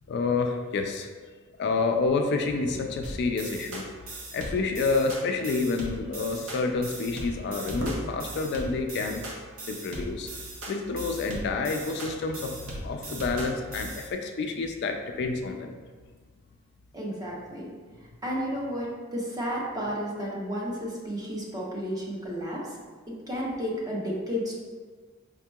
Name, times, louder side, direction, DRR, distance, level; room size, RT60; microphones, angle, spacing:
voice 1, 0.1-1.1 1.6-3.8 4.3-9.2 9.7-10.3 10.7-12.6 12.8-15.7, left 3 dB, 55° left, 4 dB, 0.3 m, -28 dB
sound 1, 3.0-14.1, right 1 dB, 90° right, 0.8 m, -39 dB
sound 2, 6.7-7.1 7.8-8.5 10.9-11.1 11.4-11.5 12.0-12.3 12.7-13.7 14.1-14.2, right 1 dB, 55° right, 0.6 m, -40 dB
voice 2, 16.9-17.7 18.2-22.8 23.1-24.6, equal, 20° right, -3 dB, 0.7 m, -32 dB
5.1 x 2.8 x 2.2 m, 1.5 s
head